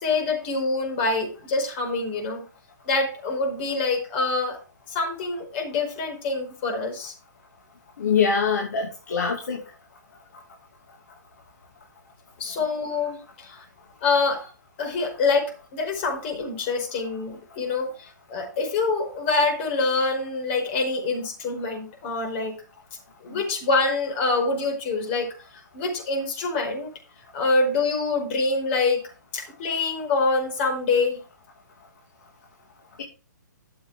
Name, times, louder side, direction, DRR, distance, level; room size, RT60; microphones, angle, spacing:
voice 1, 0.0-2.4 2.9-4.6 4.9-7.1 12.4-13.6 14.0-14.4 14.8-22.6 23.2-26.9 27.3-29.0 29.3-31.2, left 3 dB, 35° left, 3 dB, 5.2 m, -25 dB
voice 2, 8.0-9.6 23.3-23.4, left 6 dB, 60° left, 1 dB, 2.5 m, -24 dB
13.0 x 7.4 x 3.7 m, 0.32 s
figure-of-eight pair, 130°, 10 cm